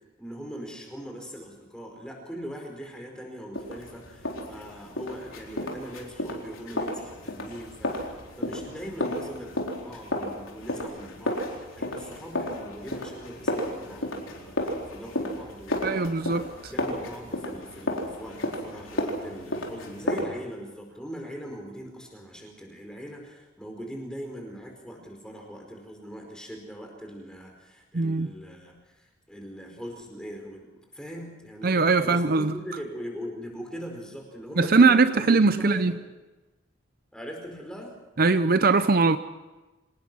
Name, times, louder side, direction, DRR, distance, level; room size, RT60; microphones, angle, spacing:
voice 1, 0.2-16.1 16.7-30.7 30.9-36.0 37.1-37.9, equal, 5° left, 4.9 m, -41 dB
sound 1, 3.5-20.2, left 1 dB, 90° left, 4.2 m, -33 dB
voice 2, 15.8-16.7 27.9-28.3 31.6-32.5 34.6-35.9 38.2-39.2, right 4 dB, 45° right, 0.6 m, -21 dB
26.5 x 19.0 x 6.2 m
head